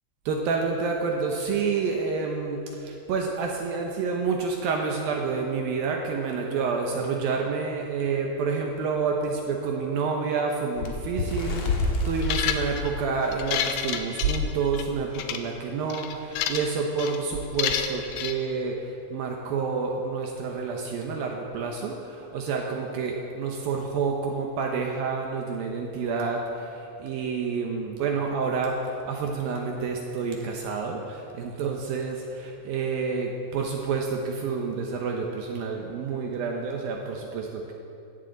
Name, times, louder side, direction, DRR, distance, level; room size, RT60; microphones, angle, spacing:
voice 1, 0.3-37.7, right 5 dB, 75° right, 1 dB, 2.2 m, -29 dB
Bird, 10.8-13.9 14.4-14.6 14.9-15.1 15.9-16.0, left 2 dB, 65° left, 1.8 m, -29 dB
sound 1, 12.2-12.9 13.3-14.8 15.2-15.4 15.9-16.7 17.0-17.2 17.6-18.3, left 9 dB, 80° left, 2.2 m, -29 dB
16.5 x 14.0 x 4.0 m, 2.7 s
omnidirectional pair, 5.2 m